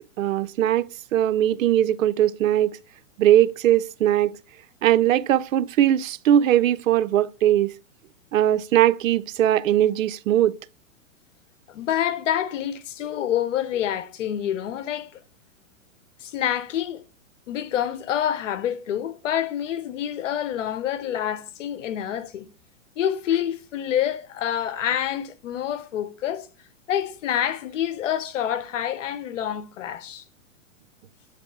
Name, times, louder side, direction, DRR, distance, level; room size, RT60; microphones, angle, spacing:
voice 1, 0.2-2.8 3.2-4.4 4.8-7.7 8.3-10.6, right 11 dB, 80° right, 0.6 m, -20 dB
voice 2, 11.7-15.2 16.2-17.0 17.5-22.5 23.0-26.5 26.9-30.2, left 10 dB, 70° left, 1.0 m, -27 dB
8.4 x 3.4 x 4.7 m
hypercardioid pair, 140°, 39 cm